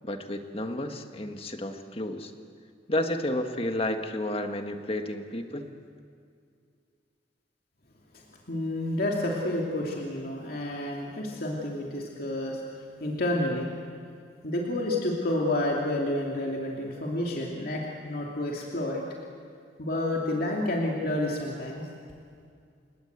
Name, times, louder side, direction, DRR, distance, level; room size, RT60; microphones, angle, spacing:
voice 1, 0.0-2.3 2.9-5.7, left 1 dB, 30° left, 6 dB, 1.7 m, -31 dB
voice 2, 8.5-12.6 13.0-13.7 14.4-19.0 19.8-21.8, left 1 dB, 55° left, -2 dB, 2.8 m, -29 dB
30.0 x 18.5 x 8.2 m, 2.3 s
head